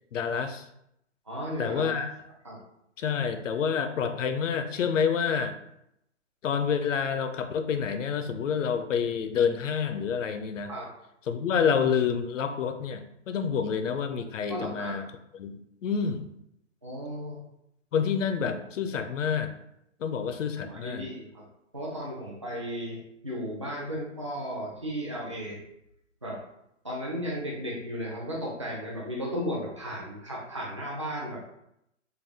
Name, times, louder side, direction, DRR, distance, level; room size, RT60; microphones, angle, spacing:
voice 1, 0.1-0.7 1.6-2.2 3.0-5.6 6.4-10.7 11.3-15.0 15.3-15.5 15.8-16.3 17.9-19.5 20.0-21.1, left 6 dB, 80° left, 8 dB, 0.6 m, -28 dB
voice 2, 1.3-2.0 2.4-2.6 10.6-10.9 14.5-14.9 16.8-17.4 20.7-21.4 21.7-25.6 26.2-26.4 26.8-31.5, equal, 25° right, -5 dB, 0.5 m, -35 dB
3.4 x 2.3 x 3.5 m, 0.79 s
hypercardioid pair, 175°, 37 cm